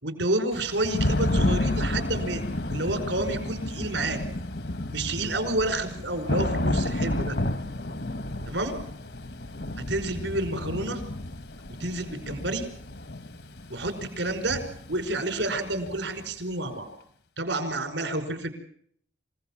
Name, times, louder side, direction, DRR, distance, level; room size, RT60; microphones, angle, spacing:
voice 1, 0.0-2.4 2.7-4.2 4.9-7.3 8.5-8.8 9.9-11.0 11.8-12.7 13.7-14.6 14.9-16.9 17.4-18.5, right 2 dB, 85° right, 8 dB, 5.1 m, -29 dB
Thunder / Rain, 0.5-16.3, left 1 dB, 65° left, 1.2 m, -31 dB
27.5 x 17.0 x 7.4 m, 0.64 s
head